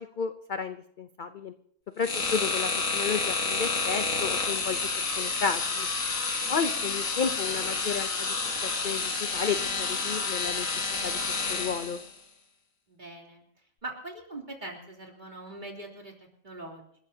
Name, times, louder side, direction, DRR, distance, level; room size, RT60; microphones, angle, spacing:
voice 1, 0.0-1.5 2.0-5.9 6.5-8.4 8.8-10.7 11.0-11.2 11.5-12.0, left 6 dB, 45° left, 9 dB, 0.7 m, -32 dB
sound 1, 2.0-12.1, left 4 dB, 70° left, 2.3 m, -29 dB
voice 2, 2.0-2.5 12.9-13.4 13.8-16.1 16.4-16.9, right 2 dB, 35° right, -1 dB, 3.5 m, -42 dB
28.5 x 13.5 x 2.8 m, 0.64 s
omnidirectional pair, 1.4 m